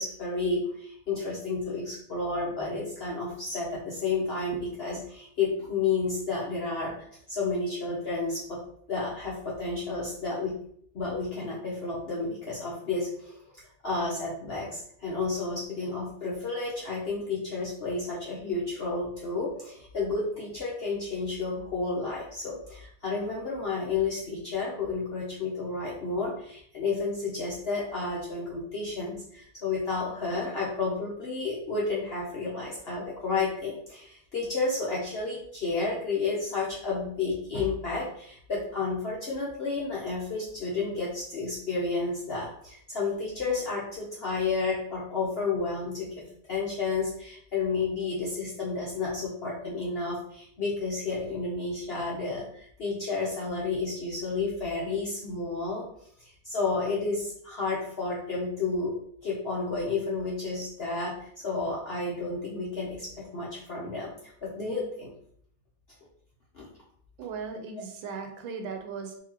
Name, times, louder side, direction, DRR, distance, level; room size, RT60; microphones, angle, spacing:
voice 1, 0.0-6.9 7.3-8.6 8.9-10.5 10.9-13.4 13.8-55.9 56.4-58.9 59.2-65.1 66.5-66.7, left 3 dB, 90° left, -5 dB, 0.5 m, -31 dB
voice 2, 67.2-69.2, right 5 dB, 85° right, 4 dB, 1.4 m, -37 dB
3.9 x 2.8 x 2.9 m, 0.65 s
omnidirectional pair, 2.1 m